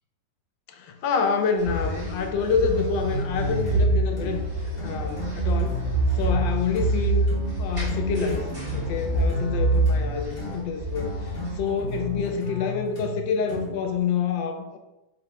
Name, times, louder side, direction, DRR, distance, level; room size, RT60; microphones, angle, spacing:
voice 1, 0.7-4.4 4.8-5.9 6.1-7.3 7.6-14.8, left 5 dB, 75° left, 5 dB, 1.2 m, -27 dB
sound 1, 1.6-11.6, right 2 dB, 20° right, 1.0 m, -26 dB
sound 2, 3.1-14.0, left 2 dB, 40° left, 1.3 m, -34 dB
4.2 x 2.5 x 4.5 m, 0.98 s
omnidirectional pair, 2.2 m